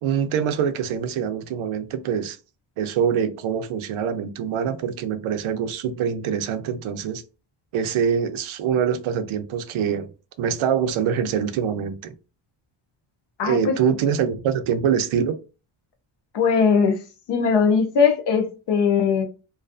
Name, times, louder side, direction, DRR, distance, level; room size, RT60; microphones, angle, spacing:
voice 1, 0.0-2.4 2.8-7.2 7.7-10.1 10.4-12.1 13.4-15.4, right 7 dB, 75° right, 0.6 m, -24 dB
voice 2, 13.4-13.7 16.3-17.0 17.3-19.2, left 6 dB, 55° left, 0.6 m, -19 dB
2.4 x 2.3 x 2.4 m
wide cardioid pair, 165°, 49 cm